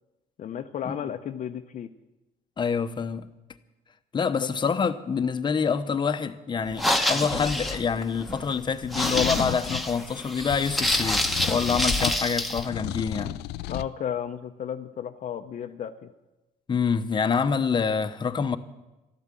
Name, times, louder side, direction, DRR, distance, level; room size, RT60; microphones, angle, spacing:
voice 1, 0.4-1.9 4.3-4.5 13.7-16.1, left 9 dB, 50° left, 0.7 m, -33 dB
voice 2, 2.6-3.3 4.1-13.4 16.7-18.6, left 6 dB, 25° left, 0.8 m, -26 dB
sound 1, 6.7-12.6, left 1 dB, ahead, 1.1 m, -27 dB
sound 2, 7.3-7.8 8.8-9.9 10.5-12.2 12.6-13.9, left 14 dB, 85° left, 0.5 m, -34 dB
12.5 x 12.0 x 7.6 m
cardioid pair, 110°, 17 cm